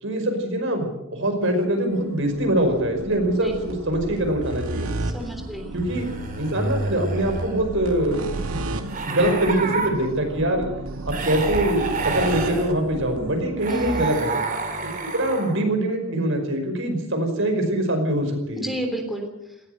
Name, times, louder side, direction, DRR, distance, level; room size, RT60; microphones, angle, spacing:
voice 1, 0.0-4.9 5.7-6.1 6.4-8.2 8.5-8.6 9.0-10.7 11.1-14.4 14.8-18.7, right 1 dB, 65° right, 5 dB, 5.4 m, -23 dB
sound 1, 1.4-14.1, right 2 dB, 90° right, 2.2 m, -33 dB
sound 2, 4.2-4.8 5.8-7.7 8.9-9.9 11.1-12.7 13.6-15.6, right 3 dB, 40° right, 3.5 m, -29 dB
voice 2, 5.0-5.7 13.7-14.2 18.6-19.6, equal, ahead, 3 dB, 3.4 m, -31 dB
19.0 x 17.0 x 8.1 m, 0.89 s
head